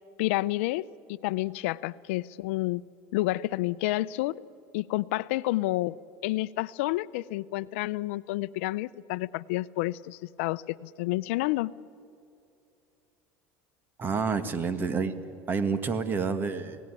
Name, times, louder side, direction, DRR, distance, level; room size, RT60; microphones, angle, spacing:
voice 1, 0.2-2.8 3.1-4.4 4.7-6.0 6.2-11.7, left 18 dB, 80° left, 17 dB, 0.6 m, -29 dB
voice 2, 14.0-15.1 15.5-16.8, right 5 dB, 30° right, 11 dB, 1.8 m, -28 dB
27.5 x 18.0 x 9.9 m, 2.6 s
supercardioid pair, 120°, 7 cm